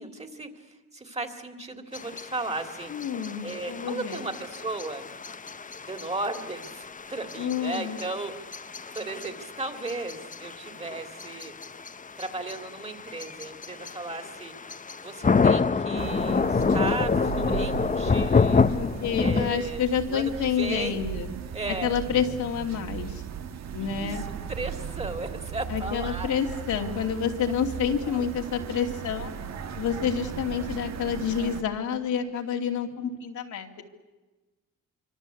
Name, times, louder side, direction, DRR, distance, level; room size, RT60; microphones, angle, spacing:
voice 1, 0.0-2.9 3.4-5.1 5.8-8.6 8.9-11.5 12.2-14.5 15.0-18.7 19.0-19.8 20.1-20.3 20.6-21.0 21.5-21.9 23.8-26.3 28.0-28.4, right 2 dB, 20° right, 7 dB, 3.1 m, -35 dB
sound 1, 1.9-19.7, left 5 dB, 25° left, 1.0 m, -28 dB
voice 2, 2.9-4.2 7.4-8.0 18.7-21.3 21.7-23.2 23.7-24.2 25.7-29.3 29.8-33.8, left 7 dB, 75° left, 2 dB, 2.7 m, -28 dB
sound 2, 16.0-31.6, right 8 dB, 60° right, 1.5 m, -37 dB
26.0 x 24.5 x 8.5 m, 1.2 s
cardioid pair, 90°, 30 cm